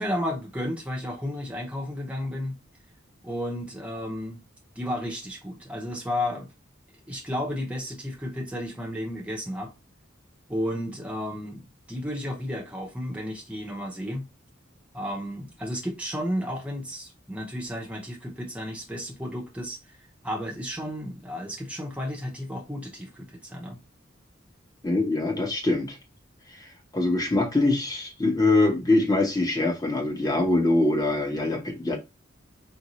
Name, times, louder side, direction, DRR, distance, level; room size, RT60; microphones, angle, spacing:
voice 1, 0.0-2.6 3.2-4.4 4.8-6.5 7.1-9.7 10.5-14.3 14.9-23.8, equal, 5° right, 0.8 m, -33 dB
voice 2, 24.8-26.0 26.9-32.0, left 2 dB, 20° left, 0.9 m, -23 dB
4.9 x 2.6 x 3.0 m
head